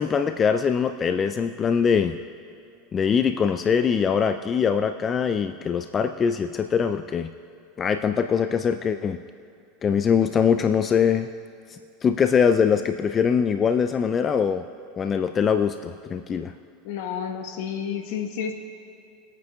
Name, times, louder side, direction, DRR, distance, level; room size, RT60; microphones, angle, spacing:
voice 1, 0.0-2.2 2.9-7.3 7.8-9.2 9.8-11.3 11.7-14.6 15.0-16.5, left 7 dB, 30° left, 9 dB, 0.4 m, -22 dB
voice 2, 16.8-18.5, left 8 dB, 70° left, 5 dB, 1.2 m, -30 dB
24.5 x 8.9 x 2.4 m, 2.6 s
hypercardioid pair, 95°, 0 cm